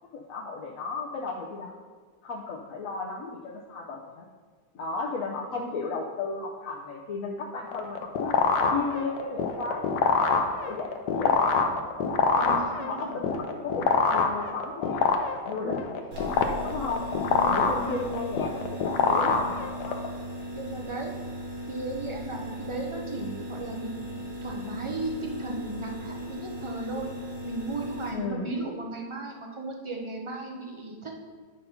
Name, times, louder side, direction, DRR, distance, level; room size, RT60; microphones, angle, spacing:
voice 1, 0.1-1.8 2.2-4.2 4.7-8.4 8.7-11.8 12.3-15.1 15.5-16.3 16.6-17.1 17.4-20.1 28.1-28.5, left 4 dB, 60° left, -3 dB, 1.0 m, -35 dB
sound 1, 7.7-20.1, left 5 dB, 75° left, 1.3 m, -25 dB
voice 2, 12.3-13.2 15.5-15.8 17.3-17.9 20.5-21.1 21.7-23.9 24.4-27.1 27.4-31.1, right 2 dB, 40° right, 0 dB, 0.4 m, -36 dB
sound 2, 16.1-28.1, equal, 80° right, 2.1 m, -37 dB
9.1 x 4.0 x 5.6 m, 1.5 s
omnidirectional pair, 1.9 m